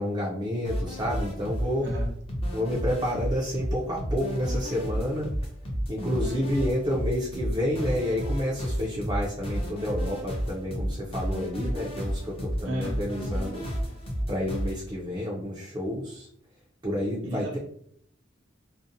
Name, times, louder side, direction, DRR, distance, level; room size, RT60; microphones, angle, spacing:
voice 1, 0.0-1.8 2.5-5.3 5.9-13.7 14.3-16.3 16.8-17.6, equal, 25° right, -5 dB, 0.4 m, -29 dB
sound 1, 0.6-14.8, equal, 30° left, 0.6 m, -31 dB
voice 2, 1.8-2.2 6.3-6.5 12.6-13.0 17.2-17.6, equal, 65° right, -1 dB, 0.8 m, -33 dB
2.5 x 2.1 x 2.7 m, 0.66 s
head